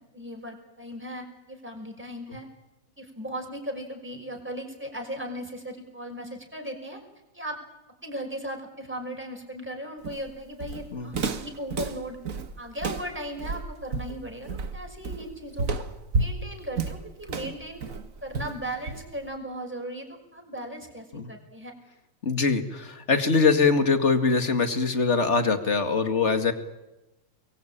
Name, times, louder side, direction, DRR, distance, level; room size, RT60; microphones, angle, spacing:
voice 1, 0.0-2.5 3.0-7.0 7.3-7.6 8.0-12.2 12.6-15.8 16.2-17.8 18.2-21.7, right 1 dB, 5° right, 2 dB, 5.7 m, -37 dB
Walk footsteps, 10.0-19.3, right 4 dB, 45° right, 1.6 m, -32 dB
voice 2, 22.2-26.5, left 4 dB, 35° left, 8 dB, 2.3 m, -23 dB
29.0 x 23.0 x 8.9 m, 1.0 s
omnidirectional pair, 2.3 m